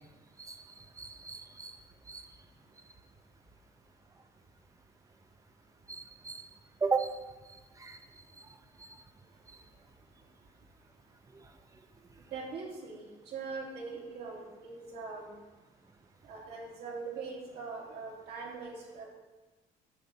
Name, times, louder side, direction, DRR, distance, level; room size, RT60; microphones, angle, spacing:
voice 1, 1.0-1.7 2.1-2.3 5.9-6.4 6.8-7.1 7.8-8.0, right 4 dB, 20° right, 7 dB, 0.7 m, -34 dB
voice 2, 12.3-13.0 13.3-15.3 16.2-19.1, right 4 dB, 75° right, -4 dB, 2.7 m, -41 dB
9.1 x 3.5 x 6.8 m, 1.2 s
cardioid pair, 110°, 17 cm